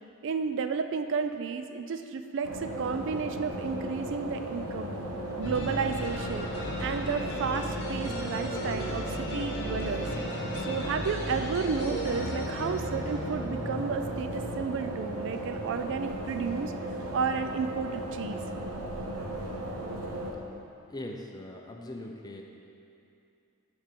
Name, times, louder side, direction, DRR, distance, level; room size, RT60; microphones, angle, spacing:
voice 1, 0.2-4.9 5.4-6.5 6.8-10.1 10.6-16.7 17.1-18.4, right 5 dB, 55° right, 8 dB, 0.4 m, -32 dB
sound 1, 2.4-20.3, right 1 dB, 90° right, 1.0 m, -36 dB
sound 2, 5.4-15.2, equal, 50° left, 1.0 m, -36 dB
voice 2, 20.9-22.4, left 1 dB, 20° left, 1 dB, 0.6 m, -40 dB
7.7 x 4.4 x 6.8 m, 2.7 s
head